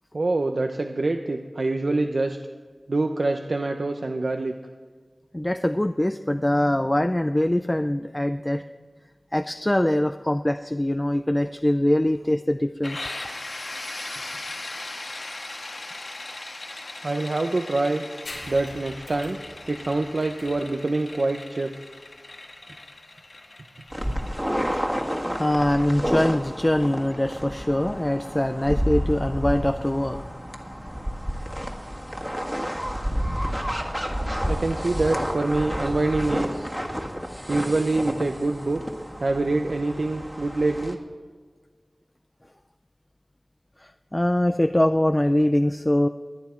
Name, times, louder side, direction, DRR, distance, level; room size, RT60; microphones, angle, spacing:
voice 1, 0.1-2.4 2.9-4.5 17.0-18.0 18.5-19.4 19.7-21.7 34.4-36.7 37.5-38.8 39.2-41.0, right 2 dB, 70° right, 5 dB, 0.7 m, -25 dB
voice 2, 5.3-8.6 9.3-13.1 25.4-30.3 30.8-31.1 43.8-46.1, left 1 dB, 20° left, 8 dB, 0.4 m, -23 dB
sound 1, 12.8-28.4, left 2 dB, 70° left, 1.5 m, -39 dB
sound 2, 18.2-25.4, left 1 dB, 90° left, 4.0 m, -46 dB
sound 3, 23.9-40.9, equal, 10° right, 1.6 m, -30 dB
22.0 x 9.5 x 4.4 m, 1.5 s
wide cardioid pair, 65°, 0 cm